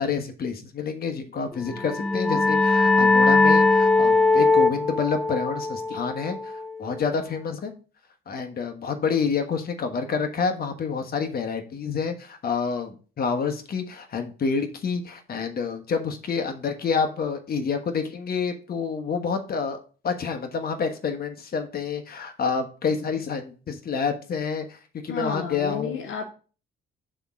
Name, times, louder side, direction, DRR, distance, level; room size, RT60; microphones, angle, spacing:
voice 1, 0.0-7.7 8.3-19.8 20.0-24.8 25.0-26.0, left 5 dB, 50° left, 1.3 m, -28 dB
sound 1, 1.7-7.0, left 3 dB, 5° left, 0.4 m, -20 dB
voice 2, 25.1-26.2, left 5 dB, 80° left, 1.0 m, -32 dB
6.2 x 3.7 x 5.9 m
cardioid pair, 90°, 20 cm